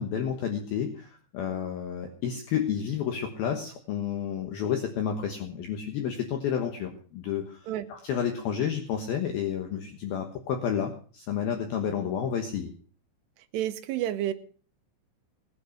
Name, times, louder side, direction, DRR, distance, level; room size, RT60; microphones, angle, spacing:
voice 1, 0.0-12.7, left 8 dB, 65° left, 4 dB, 2.8 m, -31 dB
voice 2, 13.5-14.3, right 12 dB, 75° right, 8 dB, 3.1 m, -29 dB
19.0 x 8.7 x 6.5 m, 0.43 s
omnidirectional pair, 5.2 m